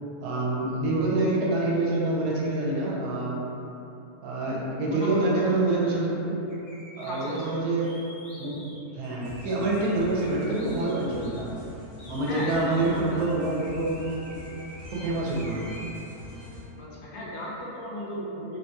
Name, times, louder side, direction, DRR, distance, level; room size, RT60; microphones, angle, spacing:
voice 1, 0.2-3.4 4.2-6.2 7.0-7.9 8.4-8.6 9.0-11.5 12.1-14.0 15.0-15.8, right 2 dB, 90° right, -4 dB, 1.1 m, -26 dB
voice 2, 4.9-5.4 7.1-7.5 12.3-13.1 16.8-18.6, left 1 dB, 85° left, -5 dB, 1.2 m, -34 dB
sound 1, 6.5-11.4 12.0-15.0 15.3-16.0, left 1 dB, 55° left, 0.8 m, -48 dB
sound 2, 9.2-16.6, left 2 dB, 60° right, 1.1 m, -44 dB
3.0 x 2.6 x 2.2 m, 2.8 s
omnidirectional pair, 1.6 m